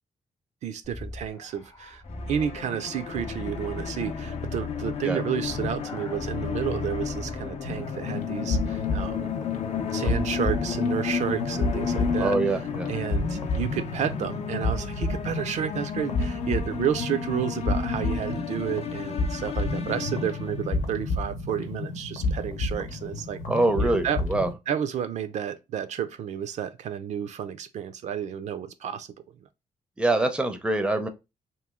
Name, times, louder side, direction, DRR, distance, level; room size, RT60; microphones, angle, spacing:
voice 1, 0.6-2.0 2.3-9.3 9.9-12.5 12.9-23.4 23.8-24.2 24.7-29.1, right 9 dB, 70° right, 0.4 m, -31 dB
sound 1, 0.8-7.7, left 3 dB, 30° left, 0.8 m, -38 dB
sound 2, 2.1-20.8, left 7 dB, 55° left, 0.5 m, -33 dB
sound 3, 7.6-24.5, left 2 dB, 85° left, 0.8 m, -31 dB
voice 2, 12.2-12.9 23.5-24.5 30.0-31.1, right 2 dB, 10° right, 0.5 m, -24 dB
3.0 x 2.6 x 3.5 m
wide cardioid pair, 135°, 13 cm